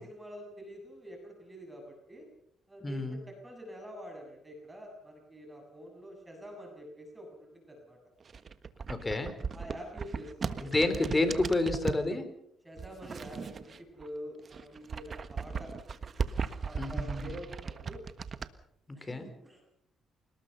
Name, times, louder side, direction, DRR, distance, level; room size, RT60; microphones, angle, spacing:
voice 1, 0.0-2.3 2.7-8.0 9.5-10.7 12.6-15.7 16.6-18.0 18.9-19.6, equal, 15° right, 2 dB, 7.2 m, -46 dB
voice 2, 2.8-3.2 8.9-9.3 10.6-12.3 16.8-17.3 18.9-19.3, left 2 dB, 20° left, 9 dB, 4.2 m, -30 dB
sound 1, 8.2-12.1 12.8-14.1 14.4-18.5, right 5 dB, 45° right, 1.4 m, -37 dB
28.0 x 19.5 x 5.7 m, 0.74 s
cardioid pair, 90°, 0 cm